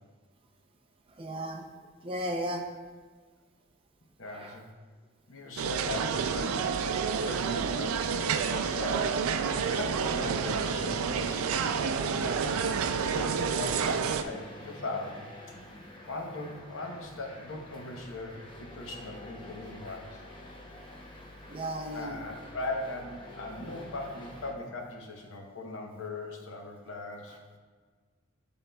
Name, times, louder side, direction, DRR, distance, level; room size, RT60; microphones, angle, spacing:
voice 1, 1.2-1.7 2.0-2.6 4.3-4.6 19.9-20.0 21.5-22.2, right 1 dB, 25° right, 2 dB, 0.5 m, -35 dB
voice 2, 4.2-4.7 5.3-6.6 7.2-9.2 9.7-12.5 13.0-15.3 16.1-20.2 21.9-27.4, left 2 dB, 65° left, 2 dB, 0.9 m, -39 dB
sound 1, 5.6-14.2, right 6 dB, 90° right, 0.4 m, -29 dB
sound 2, 11.8-24.5, left 1 dB, 25° left, 0.7 m, -48 dB
11.0 x 3.7 x 2.3 m, 1.5 s
head